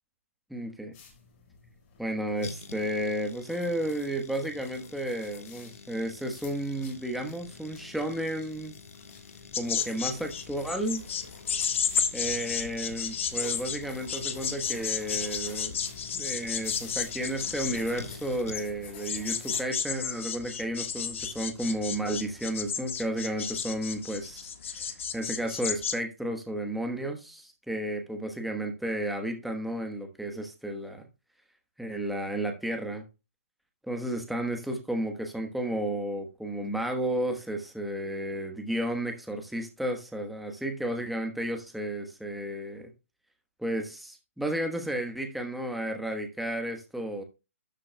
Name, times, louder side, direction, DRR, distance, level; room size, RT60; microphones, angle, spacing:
voice 1, 0.5-0.9 2.0-8.7 9.6-11.0 12.1-15.8 16.1-31.1 31.8-33.0 33.8-42.9 43.6-47.2, right 1 dB, ahead, 3 dB, 1.2 m, -32 dB
sound 1, 0.9-19.6, left 4 dB, 30° left, 4.9 m, -50 dB
sound 2, 2.4-18.9 19.2-19.3, left 4 dB, 85° left, 1.5 m, -49 dB
sound 3, 9.5-25.9, left 7 dB, 60° left, 1.5 m, -32 dB
12.0 x 7.6 x 2.2 m, 0.28 s
hypercardioid pair, 150°, 8 cm